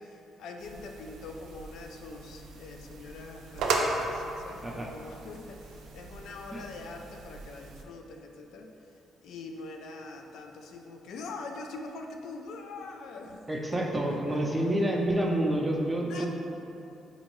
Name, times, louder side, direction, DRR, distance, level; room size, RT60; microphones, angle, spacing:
voice 1, 0.0-8.7 9.2-13.5 13.7-13.8 14.1-14.4 16.0-16.3, left 3 dB, 80° left, 3 dB, 0.3 m, -43 dB
sound 1, 0.6-7.8, right 3 dB, 80° right, 0.3 m, -37 dB
voice 2, 13.5-16.3, right 1 dB, 15° right, -1 dB, 0.4 m, -28 dB
3.6 x 2.6 x 3.0 m, 2.7 s
cardioid pair, 90°, 0 cm